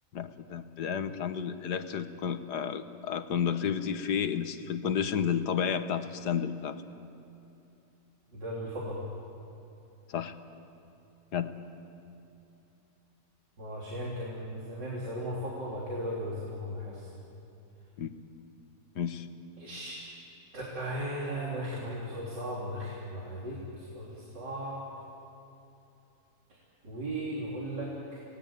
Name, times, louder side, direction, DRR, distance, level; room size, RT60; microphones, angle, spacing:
voice 1, 0.1-6.8 10.1-10.3 11.3-11.5 18.0-18.1 19.0-19.3, left 7 dB, 75° left, 9 dB, 1.7 m, -31 dB
voice 2, 8.3-9.0 13.6-17.1 19.6-20.0 20.5-24.9 26.8-28.2, equal, 90° right, -5 dB, 4.2 m, -36 dB
30.0 x 19.5 x 8.7 m, 2.9 s
omnidirectional pair, 1.8 m